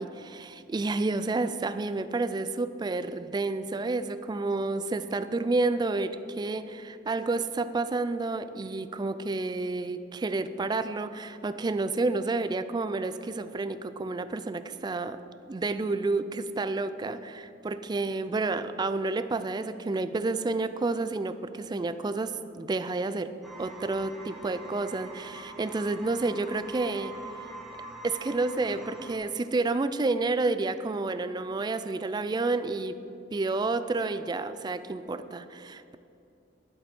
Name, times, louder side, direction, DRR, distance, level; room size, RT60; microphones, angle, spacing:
voice 1, 0.0-15.2 15.5-23.3 23.6-27.1 28.0-33.0 33.3-35.9, right 3 dB, 25° right, 12 dB, 0.3 m, -30 dB
sound 1, 23.4-29.2, right 2 dB, ahead, 1.0 m, -44 dB
11.0 x 7.7 x 4.4 m, 2.7 s
head